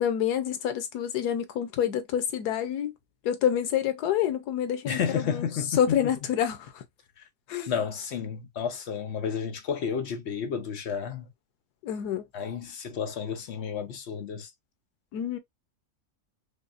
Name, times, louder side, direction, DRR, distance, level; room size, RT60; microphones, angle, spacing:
voice 1, 0.0-2.9 3.2-5.5 5.8-6.8 7.5-7.7 11.8-12.2 15.1-15.4, left 9 dB, 90° left, 1.3 m, -27 dB
voice 2, 4.8-6.0 7.2-7.3 7.7-11.3 12.3-14.5, left 7 dB, 60° left, 0.7 m, -31 dB
5.2 x 2.0 x 2.4 m
omnidirectional pair, 1.6 m